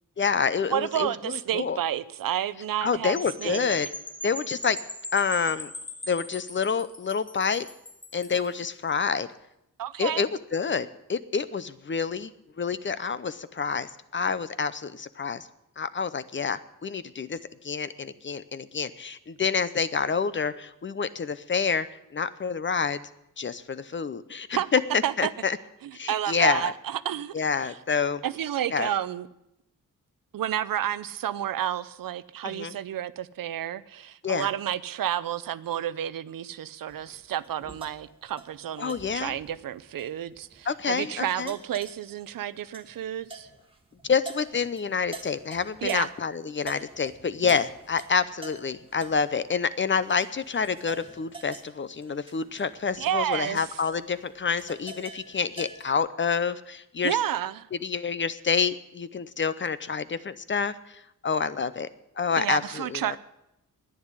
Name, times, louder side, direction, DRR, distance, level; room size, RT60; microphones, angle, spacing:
voice 1, 0.2-1.8 2.8-3.9 4.2-4.8 5.1-5.7 6.1-7.7 8.1-9.3 10.0-12.3 12.6-15.5 15.8-17.4 17.6-21.9 22.1-23.0 23.4-25.6 25.9-26.7 27.3-28.2 28.7-28.9 32.4-32.7 34.2-34.5 38.8-39.3 40.7-41.5 44.0-57.2 57.8-61.9 62.2-63.2, left 5 dB, 35° left, 0.7 m, -28 dB
voice 2, 0.7-3.7 9.8-10.2 24.6-24.7 25.0-25.3 25.8-27.3 27.6-27.7 28.2-29.3 30.3-43.5 45.8-46.1 53.0-53.6 57.0-57.7 62.4-63.2, right 11 dB, 75° right, 0.7 m, -30 dB
sound 1, 3.2-8.5, left 1 dB, 15° left, 1.1 m, -40 dB
sound 2, 36.9-46.3 46.6-55.9, right 3 dB, 15° right, 1.6 m, -46 dB
10.5 x 9.7 x 9.8 m
wide cardioid pair, 120°, 34 cm